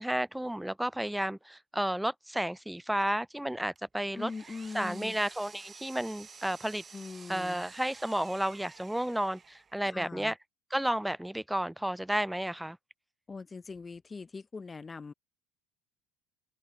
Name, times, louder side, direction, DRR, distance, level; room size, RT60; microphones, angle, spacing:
voice 1, 0.0-4.3 4.7-6.8 7.3-10.4 10.7-12.8, right 1 dB, 5° right, 0.3 m, -32 dB
Power tool, 3.8-9.8, right 5 dB, 30° right, 0.7 m, -51 dB
voice 2, 4.1-5.2 6.9-7.6 9.8-10.3 13.3-15.1, left 4 dB, 25° left, 0.9 m, -42 dB
open air
hypercardioid pair, 70°, 0 cm